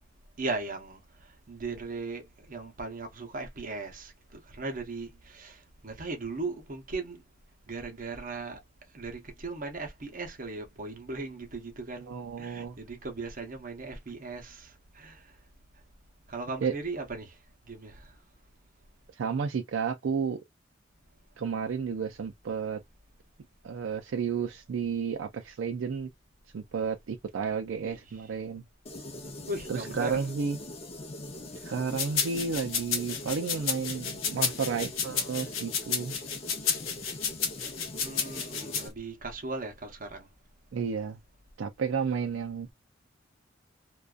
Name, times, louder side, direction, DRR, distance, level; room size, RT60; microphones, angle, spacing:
voice 1, 0.4-1.0 1.5-7.2 7.7-8.6 8.9-15.2 16.3-17.3 17.7-18.1 27.8-28.0 29.5-30.2 37.6-37.7 37.9-40.3, right 3 dB, 45° right, 0.7 m, -38 dB
voice 2, 12.1-12.8 16.6-16.7 19.2-20.4 21.4-22.8 23.6-26.1 26.5-28.6 29.7-30.6 31.6-36.2 40.7-41.2 41.6-42.7, right 6 dB, 75° right, 0.4 m, -32 dB
sound 1, 28.9-38.9, left 1 dB, 30° left, 0.6 m, -42 dB
sound 2, 32.0-38.8, left 6 dB, 90° left, 0.7 m, -31 dB
2.5 x 2.3 x 2.3 m
head